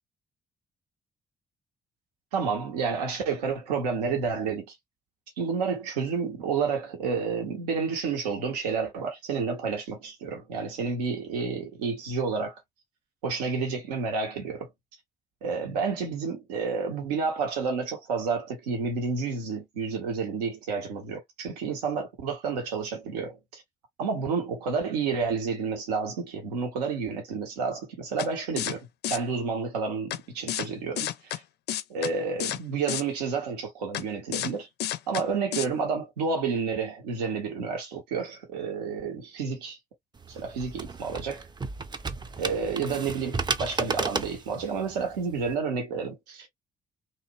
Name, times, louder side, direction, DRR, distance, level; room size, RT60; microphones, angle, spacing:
voice 1, 2.3-4.8 5.4-12.6 13.2-14.7 15.4-23.6 24.0-31.4 31.9-34.7 35.1-39.8 40.3-41.5 42.4-46.5, right 5 dB, 85° right, 0.7 m, -30 dB
sound 1, 28.2-28.3 28.6-28.7 29.0-29.2 30.1-30.2 30.5-30.7 31.0-31.4 31.7-32.1 32.4-32.6 32.9-33.0 33.9-34.0 34.3-34.5 34.8-35.2 35.5-35.7, left 12 dB, 55° left, 0.4 m, -30 dB
sound 2, 40.2-45.5, right 3 dB, 20° right, 0.5 m, -34 dB
2.7 x 2.0 x 2.5 m
hypercardioid pair, 45°, 20 cm